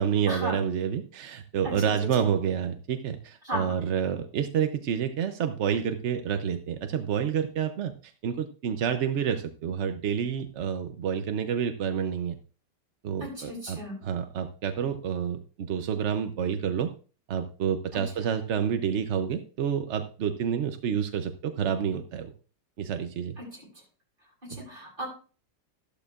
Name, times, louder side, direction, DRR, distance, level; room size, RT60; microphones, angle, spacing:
voice 1, 0.0-12.4 13.0-16.9 17.3-22.3 22.8-23.4 24.5-24.6, right 8 dB, 60° right, 8 dB, 0.7 m, -29 dB
voice 2, 13.2-13.9 17.9-18.0 23.4-23.6 24.4-25.1, equal, 30° right, -4 dB, 7.7 m, -35 dB
14.0 x 12.0 x 2.4 m, 0.37 s
omnidirectional pair, 1.9 m